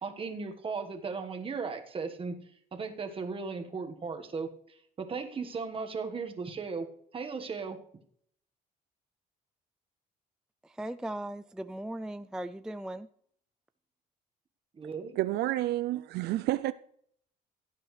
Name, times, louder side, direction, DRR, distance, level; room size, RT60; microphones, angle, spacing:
voice 1, 0.0-2.4 2.7-4.5 5.0-6.9 7.1-7.8 14.7-15.2, right 4 dB, 30° right, 1.4 m, -36 dB
voice 2, 10.6-13.1, right 1 dB, 5° right, 0.3 m, -38 dB
voice 3, 15.2-16.7, right 15 dB, 75° right, 0.4 m, -29 dB
16.0 x 9.0 x 3.3 m
cardioid pair, 110°, 17 cm